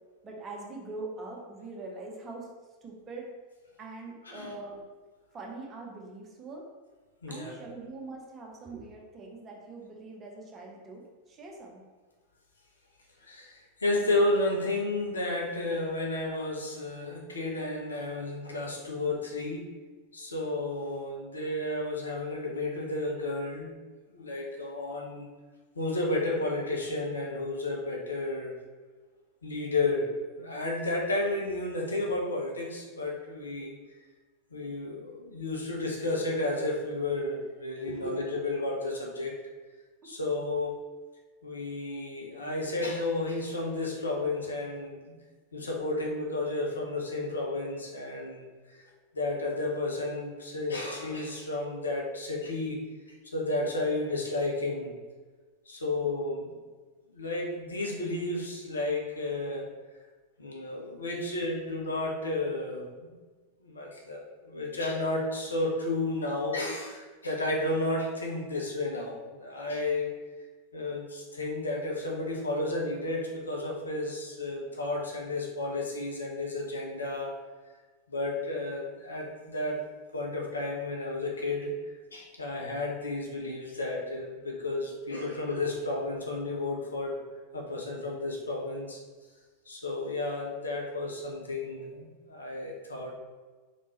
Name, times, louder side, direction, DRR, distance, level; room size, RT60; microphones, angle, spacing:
voice 1, 0.2-2.5 2.8-3.3 3.8-4.8 5.3-6.6 7.3-11.8 37.9-38.2 40.0-40.1, right 3 dB, 25° right, -2 dB, 1.0 m, -42 dB
voice 2, 7.2-7.6 13.3-19.6 20.1-23.8 24.1-25.3 25.7-28.6 29.4-30.1 30.4-33.8 34.5-39.4 40.0-40.7 41.4-45.0 45.5-48.5 49.1-52.8 53.2-54.9 55.7-56.5 57.1-59.7 60.4-63.1 63.6-70.1 70.7-77.4 78.1-79.8 80.1-81.7 82.1-87.2 87.5-89.0 89.7-93.1, left 2 dB, 75° left, -1 dB, 0.8 m, -32 dB
4.2 x 3.6 x 3.1 m, 1.3 s
figure-of-eight pair, 90°, 0 cm